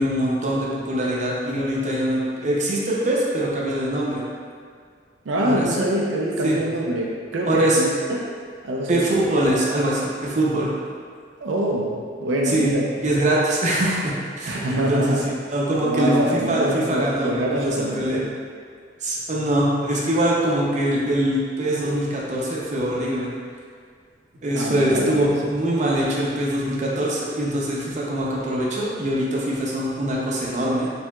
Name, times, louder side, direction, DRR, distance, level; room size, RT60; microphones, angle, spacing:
voice 1, 0.0-4.2 5.4-5.7 6.4-6.6 7.5-7.8 8.9-10.7 12.5-12.7 13.0-15.2 15.5-18.2 19.0-23.3 24.4-30.9, right 1 dB, 40° right, -5 dB, 0.6 m, -23 dB
voice 2, 5.3-8.2 8.6-9.0 11.4-12.8 14.5-15.3 15.8-18.3 24.5-25.3, right 1 dB, 85° right, -2 dB, 0.5 m, -24 dB
4.5 x 3.3 x 2.3 m, 2.1 s
head